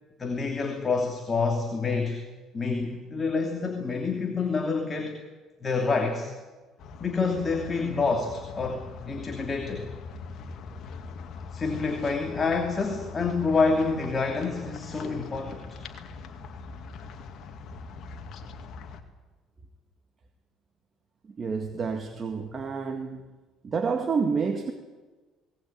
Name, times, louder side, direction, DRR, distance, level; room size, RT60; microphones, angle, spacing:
voice 1, 0.2-2.2 2.5-5.2 5.6-6.3 7.0-9.9 11.5-15.7, left 4 dB, 30° left, 3 dB, 2.9 m, -27 dB
sound 1, 6.8-19.0, left 4 dB, 60° left, 2.3 m, -42 dB
voice 2, 21.3-23.2 23.6-24.7, right 5 dB, 35° right, 4 dB, 1.9 m, -29 dB
19.5 x 18.5 x 8.9 m, 1.3 s
cardioid pair, 100°, 0 cm